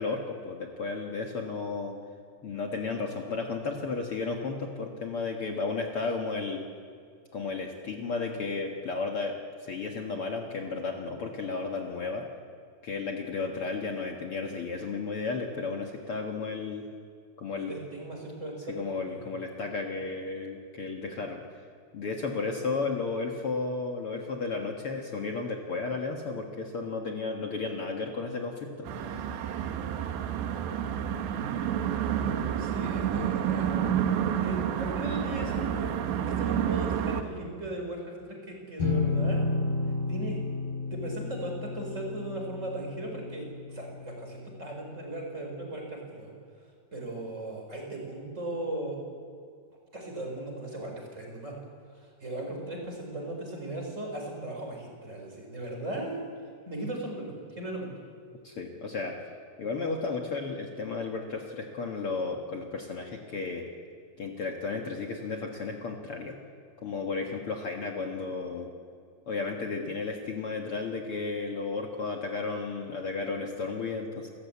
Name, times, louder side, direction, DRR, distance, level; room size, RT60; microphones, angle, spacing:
voice 1, 0.0-1.9 2.4-6.7 7.3-12.2 12.8-16.8 17.4-17.7 18.7-21.4 21.9-29.1 58.4-59.1 59.6-63.7 64.2-66.3 66.8-68.7 69.3-74.3, left 4 dB, 80° left, 1 dB, 1.2 m, -33 dB
voice 2, 17.6-18.8 19.1-19.3 31.3-31.6 32.6-33.9 34.4-35.9 36.4-39.5 40.1-40.4 40.9-46.3 46.9-49.0 49.9-51.5 51.9-56.3 56.7-57.9, right 1 dB, 15° right, 1 dB, 4.4 m, -37 dB
sound 1, 28.8-37.2, right 9 dB, 80° right, 3.5 m, -29 dB
sound 2, 38.8-44.4, left 3 dB, 60° left, 5.3 m, -31 dB
29.5 x 14.0 x 8.5 m, 2.2 s
omnidirectional pair, 5.2 m